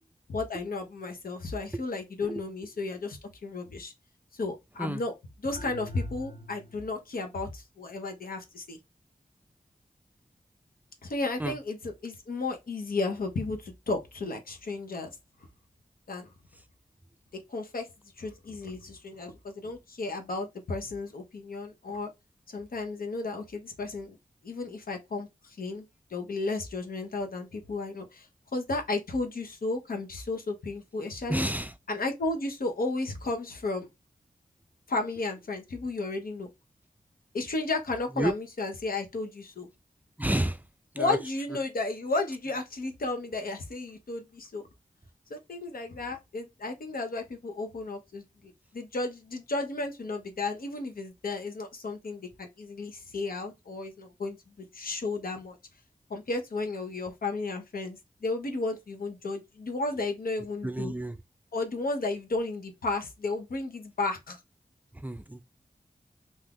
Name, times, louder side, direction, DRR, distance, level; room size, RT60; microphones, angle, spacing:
voice 1, 0.3-3.9 4.3-8.8 11.0-15.1 16.1-16.3 17.5-17.9 18.2-22.1 22.5-24.2 24.4-25.8 26.1-28.3 28.5-31.5 31.9-33.9 34.9-36.5 37.3-39.7 41.0-44.7 45.3-48.2 48.7-55.6 56.1-60.9 61.5-64.4, left 3 dB, 80° left, 0.8 m, -33 dB
sound 1, 5.5-7.0, equal, 50° left, 0.8 m, -44 dB
voice 2, 31.3-31.7 38.2-38.3 40.2-40.6 41.0-41.2 60.6-61.2 65.0-65.4, right 1 dB, 10° right, 0.4 m, -29 dB
2.6 x 2.4 x 3.5 m
cardioid pair, 55°, 15 cm